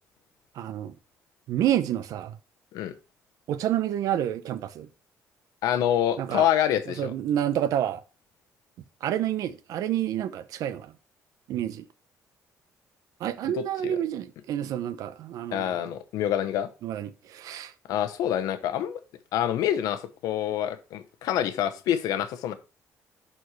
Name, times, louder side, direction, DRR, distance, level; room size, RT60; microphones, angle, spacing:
voice 1, 0.5-0.9 1.5-2.4 3.5-4.9 6.2-6.5 7.0-8.0 9.0-10.9 11.5-11.9 13.2-15.9 16.8-17.7, right 11 dB, 75° right, 0.7 m, -29 dB
voice 2, 5.6-7.1 13.5-14.0 15.5-16.7 17.9-19.0 19.3-22.5, left 10 dB, 85° left, 0.9 m, -26 dB
11.5 x 4.4 x 3.2 m
cardioid pair, 120°, 6 cm